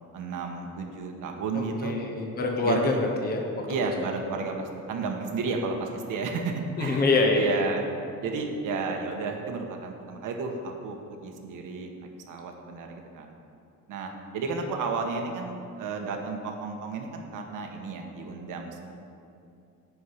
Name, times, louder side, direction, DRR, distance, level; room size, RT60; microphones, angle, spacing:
voice 1, 0.1-2.0 2.6-3.0 3.7-7.8 8.2-13.3 13.9-18.9, right 4 dB, 75° right, 3 dB, 1.3 m, -32 dB
voice 2, 1.8-3.4 6.8-7.6, left 3 dB, 30° left, 1 dB, 1.0 m, -25 dB
11.5 x 4.7 x 8.3 m, 2.6 s
cardioid pair, 160°, 32 cm